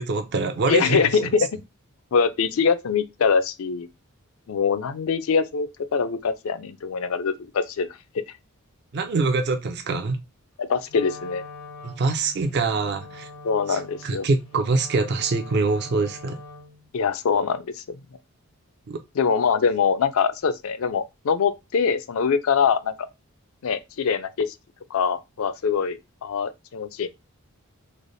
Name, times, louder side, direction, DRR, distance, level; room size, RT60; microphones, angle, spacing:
voice 1, 0.0-1.1 8.9-10.2 11.8-13.3 13.7-16.4 18.9-19.0, right 3 dB, 50° right, 0.4 m, -24 dB
voice 2, 0.7-1.5 2.1-3.9 4.5-7.9 10.6-11.4 13.4-14.3 16.9-17.8 19.2-23.1 23.6-24.5 24.9-27.1, left 6 dB, 65° left, 0.4 m, -23 dB
Wind instrument woodwind instrument, 10.9-16.9, left 2 dB, 90° left, 1.0 m, -43 dB
3.2 x 2.0 x 3.8 m
head